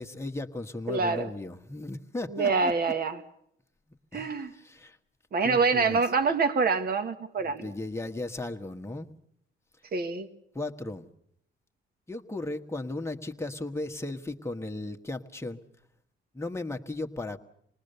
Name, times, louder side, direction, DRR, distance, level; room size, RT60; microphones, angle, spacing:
voice 1, 0.0-2.7 4.1-5.0 5.4-6.0 7.4-9.1 10.5-11.1 12.1-15.6 16.3-17.4, left 2 dB, 15° left, 4 dB, 1.5 m, -36 dB
voice 2, 0.9-1.3 2.3-3.2 4.1-4.5 5.3-7.6 9.9-10.3, right 4 dB, 50° right, 10 dB, 1.8 m, -26 dB
27.0 x 19.5 x 6.8 m, 0.71 s
cardioid pair, 90°, 20 cm